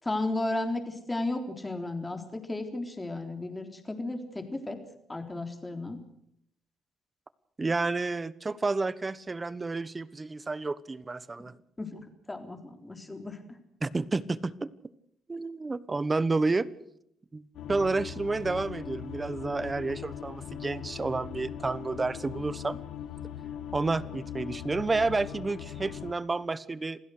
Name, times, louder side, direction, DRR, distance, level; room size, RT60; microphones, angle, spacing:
voice 1, 0.0-4.8 5.1-6.0 11.8-12.0 12.3-13.4, left 2 dB, 15° left, 6 dB, 3.8 m, -34 dB
voice 2, 7.6-11.5 13.8-14.7 15.3-16.7 17.3-17.4 17.7-22.8 23.7-27.0, right 3 dB, 25° right, 18 dB, 1.1 m, -30 dB
sound 1, 17.5-26.1, left 10 dB, 80° left, 1.2 m, -40 dB
27.0 x 16.5 x 6.5 m, 0.73 s
cardioid pair, 90°, 0 cm